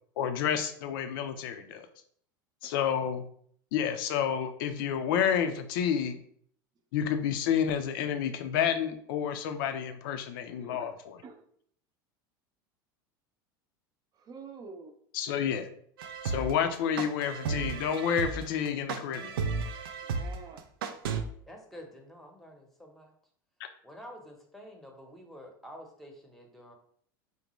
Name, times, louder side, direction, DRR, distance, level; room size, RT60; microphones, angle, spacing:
voice 1, 0.2-1.9 2.6-3.2 3.7-6.2 6.9-11.2 15.1-15.7 16.2-19.4, left 8 dB, 70° left, 8 dB, 0.5 m, -30 dB
voice 2, 10.5-10.9 11.2-11.5 14.2-14.9 20.0-20.6, right 4 dB, 35° right, 6 dB, 0.5 m, -47 dB
sound 1, 16.0-21.2, right 5 dB, 85° right, 0.4 m, -33 dB
voice 3, 21.4-23.1 23.8-26.7, equal, ahead, 2 dB, 0.8 m, -49 dB
3.9 x 2.2 x 3.0 m, 0.62 s
hypercardioid pair, 95°, 12 cm